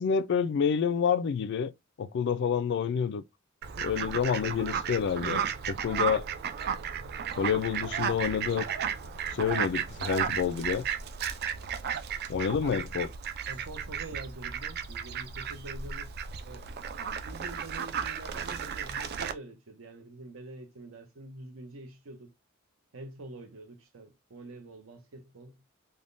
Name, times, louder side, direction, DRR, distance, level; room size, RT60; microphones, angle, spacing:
voice 1, 0.0-1.7 2.0-3.2 3.8-6.2 7.4-8.7 9.3-10.9 12.3-13.1, left 7 dB, 60° left, 0.3 m, -28 dB
Fowl, 3.6-19.3, right 7 dB, 50° right, 0.4 m, -34 dB
voice 2, 13.4-16.7 17.3-22.3 22.9-25.6, right 2 dB, 75° right, 0.8 m, -46 dB
3.4 x 2.2 x 2.5 m
head